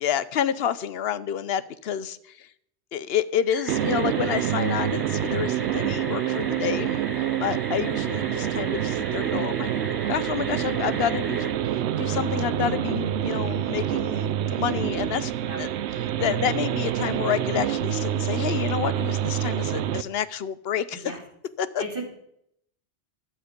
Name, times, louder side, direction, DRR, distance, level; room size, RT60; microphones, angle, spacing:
voice 1, 0.0-2.5 2.9-7.0 7.4-9.7 10.1-11.5 12.0-15.3 15.6-15.7 16.2-21.1 21.6-21.8, left 9 dB, 65° left, 15 dB, 0.8 m, -29 dB
sound 1, 3.5-11.5, equal, ahead, 1.7 m, -39 dB
sound 2, 3.7-20.0, right 11 dB, 75° right, 0.9 m, -27 dB
voice 2, 15.4-15.6 16.1-16.3 20.9-21.2 21.8-22.0, right 2 dB, 50° right, 0 dB, 3.1 m, -35 dB
12.0 x 8.6 x 5.2 m, 0.73 s
omnidirectional pair, 1.2 m